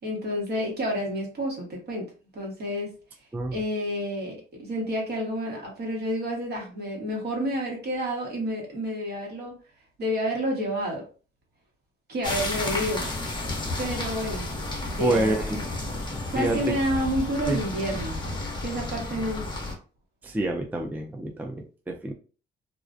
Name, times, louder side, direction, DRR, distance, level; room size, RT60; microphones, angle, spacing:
voice 1, 0.0-2.1 2.3-2.9 3.5-9.5 10.0-11.1 12.1-13.1 13.8-14.5 14.8-15.6 16.3-18.2 18.6-19.5, equal, 55° right, -1 dB, 1.2 m, -29 dB
sound 1, 12.2-19.7, left 2 dB, 25° left, 0.7 m, -32 dB
voice 2, 15.0-15.6 16.4-16.7 17.5-17.6 20.2-22.1, right 2 dB, 10° right, 3 dB, 0.3 m, -27 dB
2.4 x 2.1 x 2.5 m, 0.37 s
cardioid pair, 90°, 20 cm